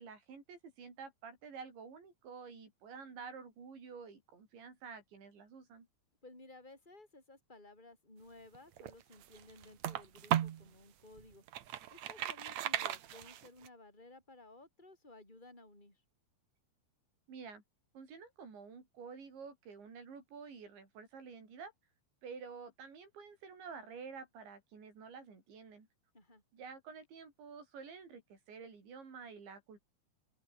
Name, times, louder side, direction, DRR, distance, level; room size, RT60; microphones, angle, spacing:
voice 1, 0.0-5.9 17.3-17.6 18.0-21.7 22.2-25.9 26.5-29.8, right 5 dB, 90° right, 8.7 m, -50 dB
voice 2, 6.2-11.4 11.9-16.0 26.1-26.4, left 2 dB, 10° left, 7.9 m, -57 dB
Bottle & Gulps, 8.5-10.7 11.2-13.7, right 11 dB, 70° right, 1.7 m, -37 dB
open air
omnidirectional pair, 5.0 m